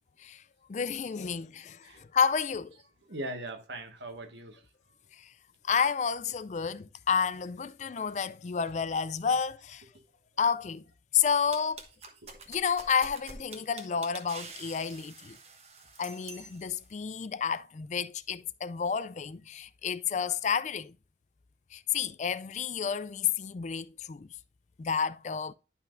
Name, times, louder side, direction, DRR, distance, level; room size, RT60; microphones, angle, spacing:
voice 1, 0.7-2.8 5.2-5.3 5.6-9.8 10.4-10.8 11.1-11.8 12.5-15.4 16.0-20.9 21.7-24.3 24.8-25.5, left 6 dB, 40° left, 0.3 m, -30 dB
voice 2, 2.7-4.6 4.9-5.0 8.6-8.7 9.7-9.9 12.2-12.3 12.7-12.9 13.5-13.6, right 1 dB, 75° right, 1.5 m, -42 dB
sound 1, 11.5-16.8, right 3 dB, 35° right, 1.2 m, -47 dB
11.0 x 5.7 x 2.5 m
head